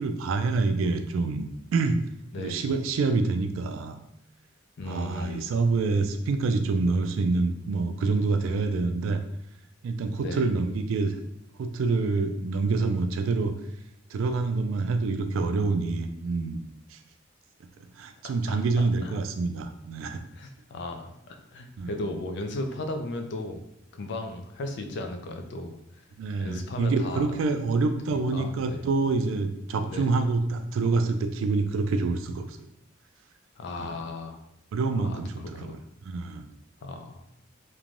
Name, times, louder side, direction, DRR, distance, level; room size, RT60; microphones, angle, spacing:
voice 1, 0.0-2.0 2.4-4.0 4.9-9.2 9.8-11.1 11.6-13.5 14.1-16.6 16.9-17.0 18.0-20.2 21.8-22.0 26.2-32.6 33.8-34.0 34.7-35.8 36.0-36.4, right 3 dB, 85° right, 8 dB, 0.3 m, -26 dB
voice 2, 4.8-5.5 10.2-10.4 18.5-19.1 20.3-23.6 23.9-25.8 26.4-27.4 28.1-28.8 29.8-30.1 33.6-34.4 35.0-35.2 35.5-35.8 36.8-37.2, left 2 dB, 60° left, 5 dB, 0.4 m, -36 dB
3.1 x 2.1 x 2.5 m, 0.80 s
head